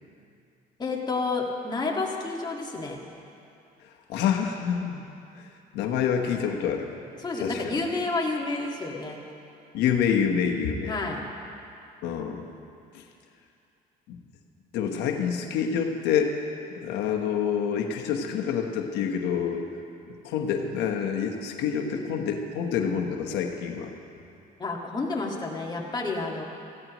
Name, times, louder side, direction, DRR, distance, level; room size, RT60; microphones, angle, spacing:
voice 1, 0.8-3.0 7.2-9.2 10.9-11.2 24.6-26.5, left 3 dB, 25° left, -1 dB, 1.9 m, -30 dB
voice 2, 4.1-5.0 5.4-6.9 7.4-7.8 9.7-10.9 12.0-12.5 12.9-13.0 14.1-14.2 14.7-19.7 20.2-23.9, left 7 dB, 85° left, 3 dB, 1.1 m, -27 dB
17.0 x 15.0 x 3.0 m, 2.7 s
cardioid pair, 110°, 17 cm